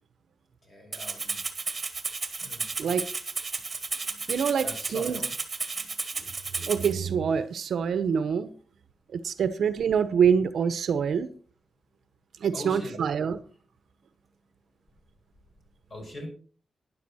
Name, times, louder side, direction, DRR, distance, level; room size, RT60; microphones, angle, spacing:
voice 1, 0.7-1.4 2.4-2.7 4.0-4.1 4.5-5.3 12.5-13.0 15.9-16.3, left 1 dB, 35° left, 5.7 m, -41 dB
Rattle (instrument), 0.9-6.9, right 4 dB, 30° right, 1.6 m, -33 dB
voice 2, 4.3-5.2 6.6-8.5 9.1-11.3 12.4-13.4, right 7 dB, 75° right, 0.9 m, -25 dB
12.5 x 10.5 x 4.2 m
wide cardioid pair, 140°, 0 cm